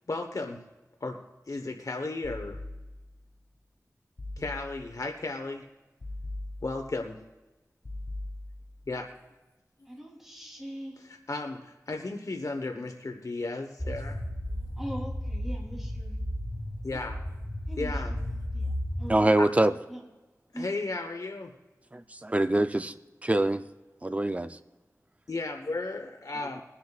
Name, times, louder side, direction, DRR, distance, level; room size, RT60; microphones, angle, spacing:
voice 1, 0.1-0.6 1.0-1.2 1.5-2.6 4.4-5.6 6.6-7.2 8.9-9.1 11.3-14.2 14.5-14.6 16.8-17.2 17.8-18.1 19.4-19.5 20.5-21.5 25.3-26.6, left 2 dB, 70° left, 4 dB, 1.1 m, -34 dB
sound 1, 2.2-3.3 4.2-5.1 6.0-7.1 7.8-8.9, left 1 dB, 50° left, 1.7 m, -40 dB
voice 2, 9.9-11.0 14.8-16.2 17.7-20.0 20.5-20.7, right 1 dB, 5° right, -1 dB, 3.3 m, -42 dB
sound 2, 13.8-19.2, left 1 dB, 15° left, 1.2 m, -34 dB
voice 3, 19.1-19.7 21.9-22.9 23.2-23.6 24.0-24.5, right 1 dB, 25° right, 10 dB, 0.6 m, -24 dB
22.5 x 10.5 x 2.5 m, 1.1 s
wide cardioid pair, 70°, 6 cm